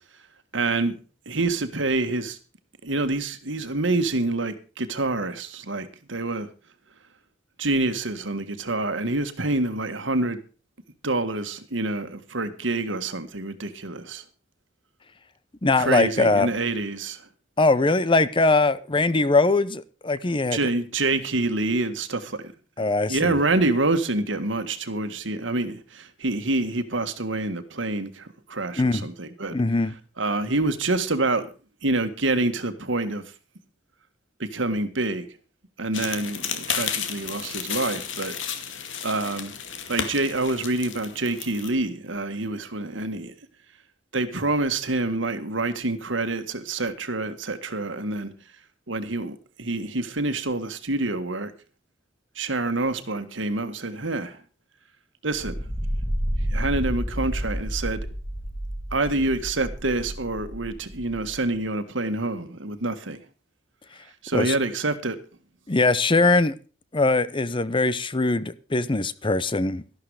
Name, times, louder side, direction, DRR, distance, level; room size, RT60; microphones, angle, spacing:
voice 1, 0.5-0.9 1.2-2.4 2.8-6.5 7.6-10.4 11.0-14.2 15.8-17.2 20.5-22.5 22.8-29.6 30.2-31.5 31.8-33.2 34.4-35.2 35.8-38.3 39.0-39.5 39.9-43.3 44.1-48.3 48.9-51.5 52.3-54.4 55.2-55.6 56.5-58.1 58.9-63.2 64.2-65.2, right 2 dB, 75° right, 1.7 m, -27 dB
voice 2, 15.6-16.5 17.6-20.6 22.8-23.4 28.8-29.1 29.5-29.9 64.3-64.5 65.7-66.5 66.9-69.8, left 3 dB, 25° left, 0.7 m, -21 dB
sound 1, 35.9-41.7, left 7 dB, 75° left, 2.2 m, -32 dB
sound 2, 55.3-61.4, equal, ahead, 2.3 m, -30 dB
13.0 x 12.0 x 4.9 m
head